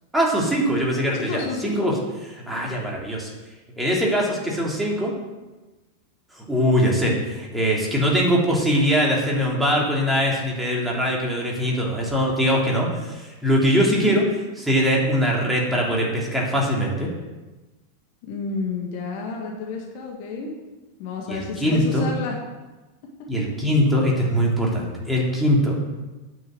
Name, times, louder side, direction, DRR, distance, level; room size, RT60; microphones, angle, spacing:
voice 1, 0.1-1.9 2.5-3.3 3.8-5.1 6.3-14.2 14.6-17.1 21.3-22.1 23.3-25.8, equal, 5° right, -3 dB, 3.2 m, -22 dB
voice 2, 1.1-1.9 13.9-14.1 18.3-20.5 21.0-22.4, left 4 dB, 45° left, 0 dB, 2.0 m, -30 dB
9.3 x 7.0 x 7.8 m, 1.2 s
figure-of-eight pair, 90°, 0 cm